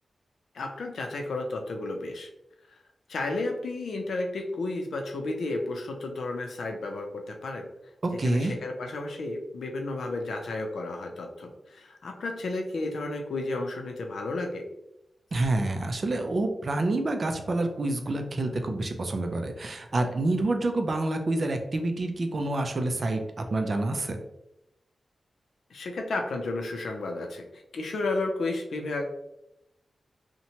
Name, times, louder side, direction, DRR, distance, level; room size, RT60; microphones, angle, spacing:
voice 1, 0.5-2.3 3.1-7.7 8.2-14.6 25.7-29.1, left 2 dB, 90° left, 3 dB, 0.4 m, -32 dB
voice 2, 8.0-8.5 15.3-24.2, right 2 dB, 45° right, 5 dB, 0.4 m, -28 dB
2.8 x 2.1 x 2.7 m, 0.86 s
wide cardioid pair, 110°, 0 cm